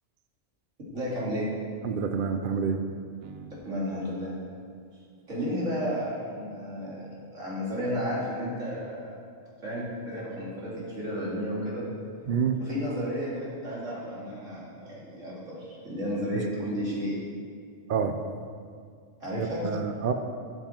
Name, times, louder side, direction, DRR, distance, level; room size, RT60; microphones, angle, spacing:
voice 1, 0.9-1.5 3.6-4.3 5.3-7.0 7.3-9.2 9.6-11.9 12.6-17.1 19.2-19.7, equal, 85° right, -7 dB, 3.1 m, -32 dB
voice 2, 1.8-2.8 3.2-3.5 12.3-12.6 17.9-18.2 19.4-20.1, right 6 dB, 50° right, 7 dB, 0.7 m, -28 dB
12.5 x 7.8 x 4.4 m, 2.2 s
omnidirectional pair, 1.3 m